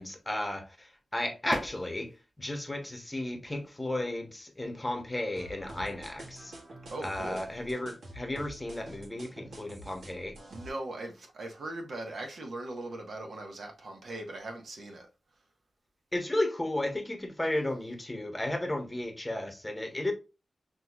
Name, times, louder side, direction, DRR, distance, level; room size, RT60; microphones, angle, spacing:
voice 1, 0.0-6.5 7.0-10.3 16.1-20.1, left 1 dB, 15° left, 0.9 m, -34 dB
sound 1, 1.5-17.9, equal, 20° right, 2.5 m, -52 dB
sound 2, 5.4-10.7, right 1 dB, 85° right, 1.7 m, -47 dB
voice 2, 6.9-7.4 10.5-15.1, right 2 dB, 70° right, 1.3 m, -40 dB
6.0 x 3.1 x 2.4 m
wide cardioid pair, 95°, 0 cm